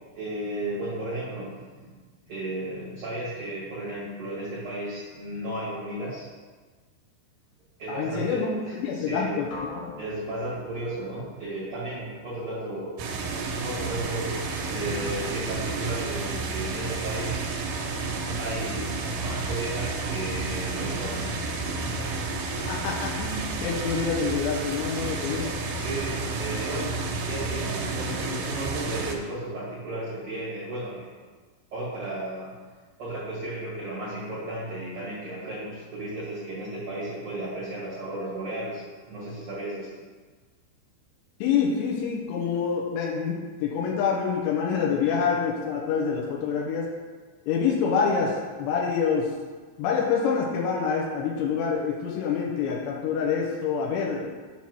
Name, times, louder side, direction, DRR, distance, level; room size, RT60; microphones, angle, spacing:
voice 1, 0.1-2.0 2.2-6.3 7.8-9.3 10.0-13.0 13.6-17.4 18.4-21.3 21.8-22.4 25.7-31.1 31.7-32.5 33.0-39.9, right 1 dB, 65° right, -10 dB, 1.4 m, -34 dB
voice 2, 7.9-9.9 22.7-25.5 41.4-46.9 47.5-49.3 49.8-54.3, left 6 dB, 90° left, -2 dB, 3.0 m, -26 dB
sound 1, 9.5-13.5, left 2 dB, 60° left, 2.1 m, -44 dB
sound 2, 13.0-29.2, right 3 dB, 85° right, 3.1 m, -31 dB
7.6 x 2.8 x 6.0 m, 1.4 s
omnidirectional pair, 5.1 m